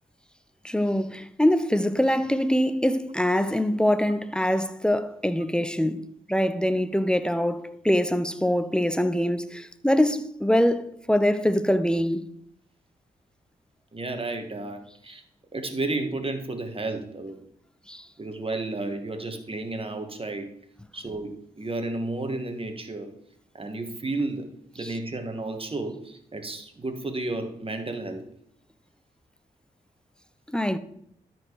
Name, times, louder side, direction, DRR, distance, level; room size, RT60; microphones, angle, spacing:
voice 1, 0.6-12.2 17.9-18.0 24.8-24.9 30.5-30.8, equal, 5° left, 0.8 m, -24 dB
voice 2, 13.9-15.2 15.5-17.4 18.2-20.5 20.9-23.1 23.5-28.2, right 2 dB, 35° right, 1.6 m, -32 dB
13.0 x 4.6 x 4.7 m
supercardioid pair, 45°, 16 cm